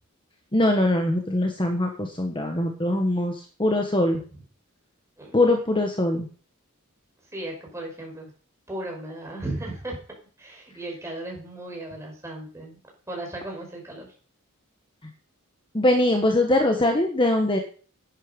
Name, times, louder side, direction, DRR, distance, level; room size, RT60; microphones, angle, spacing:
voice 1, 0.5-4.2 5.3-6.3 15.7-17.6, left 1 dB, 25° left, 3 dB, 1.4 m, -22 dB
voice 2, 7.3-8.3 8.7-10.0 10.4-12.8 13.1-14.1, right 1 dB, 15° right, 0 dB, 5.6 m, -36 dB
11.0 x 9.6 x 5.4 m, 0.41 s
head